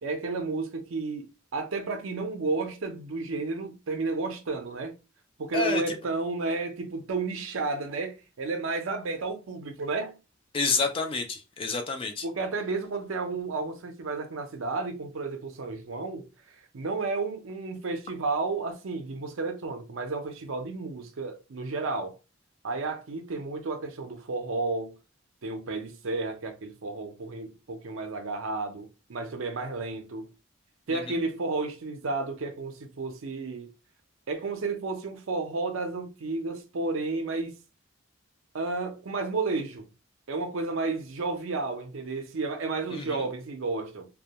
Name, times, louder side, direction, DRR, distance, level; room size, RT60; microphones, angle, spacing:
voice 1, 0.0-4.9 5.4-10.2 12.2-16.3 16.7-22.2 22.6-25.0 25.4-30.3 30.9-33.7 34.3-37.5 38.5-39.9 40.3-44.1, right 3 dB, 70° right, 0.5 m, -32 dB
voice 2, 10.5-12.2 42.9-43.2, left 4 dB, 25° left, 0.3 m, -28 dB
2.2 x 2.1 x 2.8 m
head